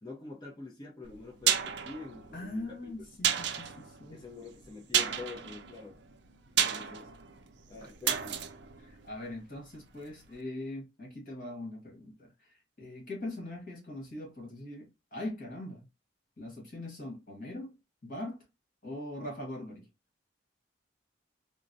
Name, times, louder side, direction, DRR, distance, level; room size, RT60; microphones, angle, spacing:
voice 1, 0.0-2.7 4.1-6.0 6.6-7.1 7.7-8.5, left 3 dB, 25° left, 0.8 m, -46 dB
sound 1, 1.0-9.9 10.2-10.3, right 9 dB, 65° right, 0.5 m, -33 dB
voice 2, 2.3-4.2 8.8-12.3 12.8-15.9 16.4-17.7 18.0-18.4 18.8-19.9, left 1 dB, 45° left, 1.6 m, -41 dB
3.9 x 2.1 x 2.6 m
head